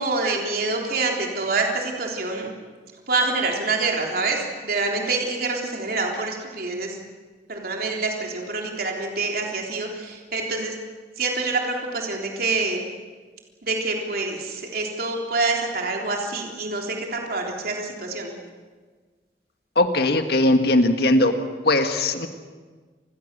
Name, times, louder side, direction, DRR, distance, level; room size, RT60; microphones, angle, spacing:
voice 1, 0.0-2.5 3.1-7.0 7.5-10.8 11.2-12.8 13.6-18.3, right 3 dB, 60° right, 1 dB, 3.6 m, -26 dB
voice 2, 19.7-21.3 21.6-22.3, left 2 dB, 60° left, 7 dB, 1.8 m, -19 dB
28.0 x 21.0 x 6.8 m, 1.4 s
head